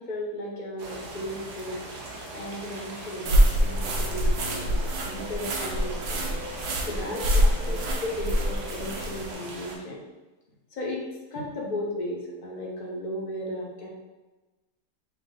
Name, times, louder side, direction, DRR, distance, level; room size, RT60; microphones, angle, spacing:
voice 1, 0.0-1.8 2.3-6.4 6.9-10.0 10.7-13.9, left 1 dB, 40° left, -2 dB, 0.7 m, -35 dB
sound 1, 0.8-9.8, right 2 dB, 85° right, 1.5 m, -40 dB
sound 2, 3.3-9.3, equal, 70° right, 1.1 m, -25 dB
6.0 x 2.1 x 3.8 m, 1.2 s
omnidirectional pair, 1.8 m